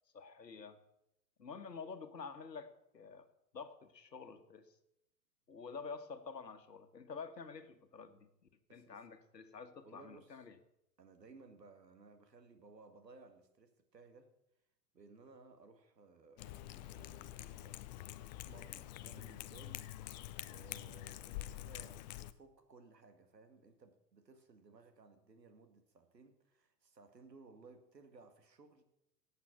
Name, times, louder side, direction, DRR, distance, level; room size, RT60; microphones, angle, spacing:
voice 1, 0.1-0.8 1.4-3.3 3.5-4.8 5.5-8.3 8.7-10.6, left 5 dB, 85° left, 1.5 m, -49 dB
voice 2, 8.7-9.1 9.8-10.4 11.0-14.3 14.9-17.9 18.2-19.9 20.4-28.8, right 4 dB, 85° right, 2.1 m, -60 dB
Cat, 16.4-22.3, left 14 dB, 30° left, 0.4 m, -47 dB
17.5 x 8.2 x 6.0 m
figure-of-eight pair, 105°, 48 cm